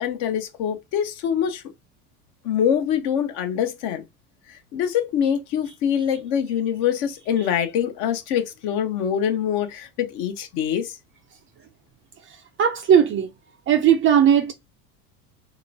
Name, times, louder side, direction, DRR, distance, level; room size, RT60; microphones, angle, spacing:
voice 1, 0.0-1.6 2.4-4.0 4.5-11.0, left 9 dB, 55° left, 0.8 m, -24 dB
voice 2, 12.6-13.3 13.7-14.5, right 9 dB, 30° right, 0.4 m, -17 dB
3.0 x 2.9 x 2.6 m
hypercardioid pair, 85°, 45 cm